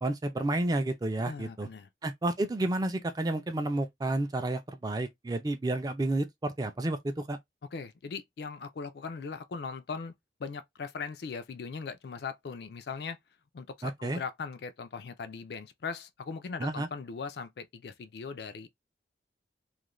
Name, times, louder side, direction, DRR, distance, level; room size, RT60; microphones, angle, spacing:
voice 1, 0.0-1.7 2.0-7.4 13.8-14.2 16.6-16.9, right 2 dB, 20° right, 0.3 m, -31 dB
voice 2, 1.2-1.9 7.7-10.1 10.4-13.2 13.5-18.7, left 5 dB, 60° left, 0.4 m, -39 dB
2.4 x 2.1 x 3.0 m
head